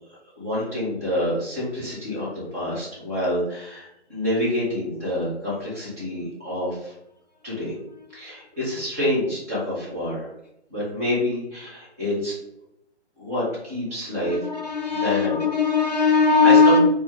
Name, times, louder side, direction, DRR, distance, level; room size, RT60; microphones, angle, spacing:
voice 1, 0.4-6.9 7.4-7.7 8.1-10.3 10.7-12.4 13.2-14.4 14.9-15.5 16.4-16.9, left 1 dB, 15° right, -8 dB, 0.6 m, -27 dB
voice 2, 14.2-16.9, left 4 dB, 40° left, 2 dB, 0.4 m, -18 dB
2.4 x 2.1 x 3.3 m, 0.81 s
hypercardioid pair, 155°, 35 cm